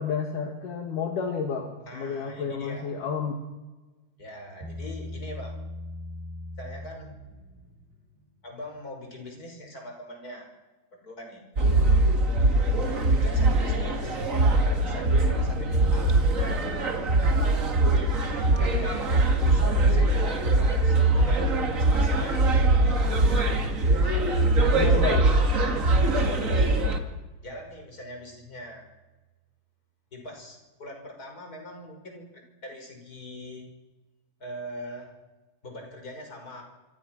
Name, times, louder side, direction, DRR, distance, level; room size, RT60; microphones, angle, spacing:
voice 1, 0.0-3.3 19.6-19.7 24.7-25.3, left 6 dB, 60° left, 3 dB, 3.4 m, -31 dB
voice 2, 1.9-2.9 4.2-5.6 6.6-7.1 8.4-10.5 11.0-11.4 12.8-16.2 18.6-22.4 25.6-26.7 27.4-28.8 30.1-33.7 34.4-35.1 35.6-36.6, left 1 dB, 25° left, 3 dB, 5.9 m, -42 dB
Bass guitar, 4.6-8.0, left 1 dB, 80° right, 6.7 m, -39 dB
sound 1, 11.5-27.0, right 2 dB, 30° right, 1.6 m, -22 dB
sound 2, 14.8-28.8, right 5 dB, 45° right, 4.1 m, -46 dB
27.5 x 25.0 x 6.1 m, 1.2 s
omnidirectional pair, 4.3 m